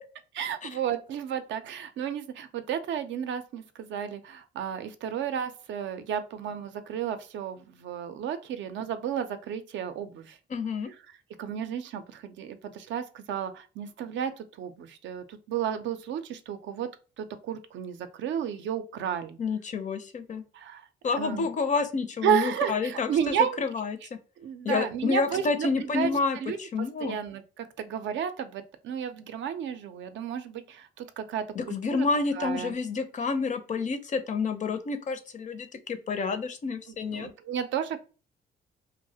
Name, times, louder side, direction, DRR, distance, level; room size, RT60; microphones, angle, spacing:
voice 1, 0.4-10.4 11.4-16.9 17.2-19.4 20.5-20.8 21.1-21.5 22.2-23.6 24.4-26.1 26.4-26.6 27.0-32.1 32.4-32.8 37.1-38.0, right 9 dB, 70° right, 9 dB, 0.4 m, -32 dB
voice 2, 10.5-10.9 19.4-20.4 21.0-24.2 24.6-27.2 31.5-37.3, left 4 dB, 40° left, 8 dB, 0.4 m, -29 dB
2.3 x 2.0 x 2.6 m, 0.35 s
cardioid pair, 90°, 20 cm